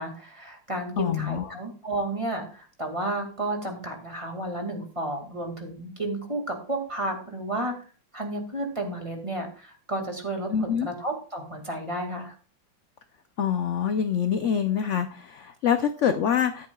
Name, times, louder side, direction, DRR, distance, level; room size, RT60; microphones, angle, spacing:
voice 1, 0.0-7.7 8.1-12.3, right 1 dB, 15° right, 2 dB, 2.1 m, -32 dB
voice 2, 1.0-1.4 10.5-10.9 13.4-16.7, left 8 dB, 60° left, 8 dB, 0.7 m, -25 dB
13.5 x 10.5 x 2.3 m, 0.39 s
omnidirectional pair, 2.0 m